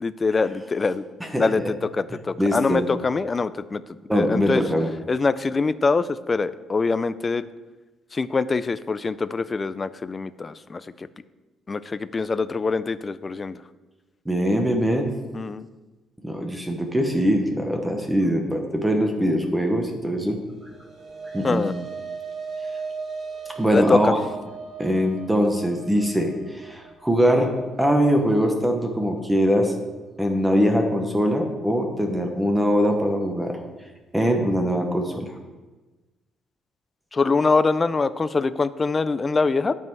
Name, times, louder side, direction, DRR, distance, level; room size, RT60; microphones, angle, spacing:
voice 1, 0.0-1.0 1.4-3.8 4.1-4.6 5.1-7.5 8.1-11.1 11.7-13.6 15.3-15.7 21.4-21.7 23.7-24.1 37.1-39.7, left 4 dB, 25° left, 14 dB, 0.4 m, -24 dB
voice 2, 1.2-1.7 2.1-2.8 4.1-4.9 14.3-15.1 16.2-20.4 21.3-21.6 23.6-24.2 24.8-27.5 27.8-29.7 30.2-33.6 34.1-35.3, equal, 5° right, 3 dB, 0.9 m, -22 dB
sound 1, 20.5-29.0, right 5 dB, 40° right, 1.6 m, -38 dB
12.5 x 5.5 x 4.6 m, 1.2 s
cardioid pair, 140°, 0 cm